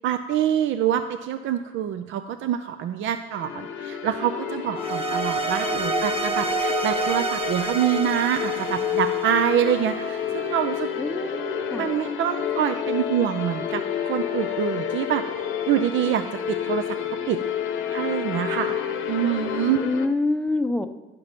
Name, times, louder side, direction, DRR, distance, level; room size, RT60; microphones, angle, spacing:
voice 1, 0.0-10.9 11.8-15.2 15.7-16.8 17.3-17.4 17.9-18.8 19.1-19.9, right 10 dB, 75° right, 8 dB, 0.5 m, -25 dB
sound 1, 3.3-20.1, left 9 dB, 85° left, 0.8 m, -29 dB
sound 2, 4.8-10.1, right 5 dB, 30° right, 1.0 m, -29 dB
voice 2, 11.0-11.8 19.8-20.9, left 2 dB, 5° left, 8 dB, 0.6 m, -26 dB
10.5 x 5.8 x 5.1 m, 1.1 s
cardioid pair, 90°, 20 cm